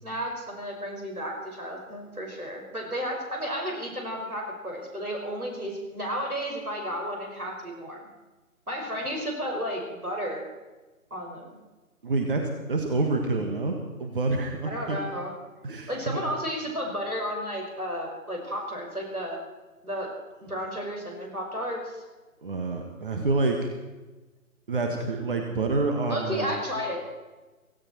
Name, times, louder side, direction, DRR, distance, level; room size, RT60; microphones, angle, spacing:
voice 1, 0.0-8.1 8.7-10.5 11.1-11.6 14.6-15.3 15.9-19.4 19.8-20.1 20.5-22.0 26.1-27.1, equal, 90° right, 0 dB, 5.8 m, -33 dB
voice 2, 12.0-15.0 15.6-16.3 22.4-23.7 24.7-26.5, right 3 dB, 40° right, 3 dB, 1.8 m, -27 dB
17.0 x 16.0 x 4.5 m, 1.2 s
figure-of-eight pair, 150°, 43 cm